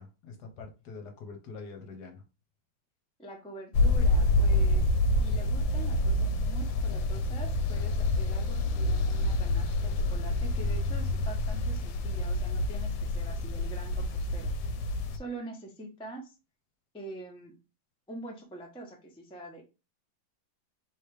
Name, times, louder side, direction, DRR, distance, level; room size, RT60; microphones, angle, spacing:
voice 1, 0.0-2.2, left 4 dB, 65° left, 1.3 m, -45 dB
voice 2, 3.2-4.9 5.2-14.5 15.1-16.3 16.9-17.5 18.1-19.6, right 1 dB, 5° left, 0.5 m, -45 dB
sound 1, 3.7-15.2, left 1 dB, 85° left, 1.4 m, -27 dB
3.3 x 3.1 x 4.7 m
omnidirectional pair, 2.1 m